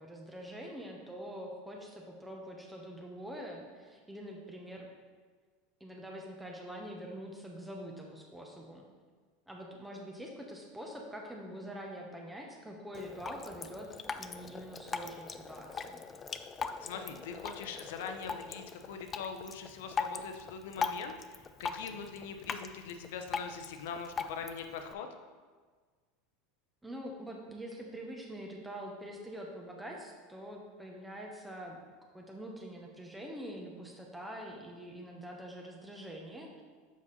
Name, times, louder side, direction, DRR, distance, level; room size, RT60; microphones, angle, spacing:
voice 1, 0.0-4.9 5.8-8.8 9.5-16.0 26.8-31.8 32.1-36.6, equal, 5° right, -1 dB, 1.0 m, -45 dB
Drip, 12.9-24.9, left 5 dB, 25° left, 0.4 m, -40 dB
voice 2, 16.8-21.2 21.6-25.1, left 6 dB, 75° left, 6 dB, 0.7 m, -42 dB
7.1 x 4.8 x 4.1 m, 1.5 s
hypercardioid pair, 105°, 0 cm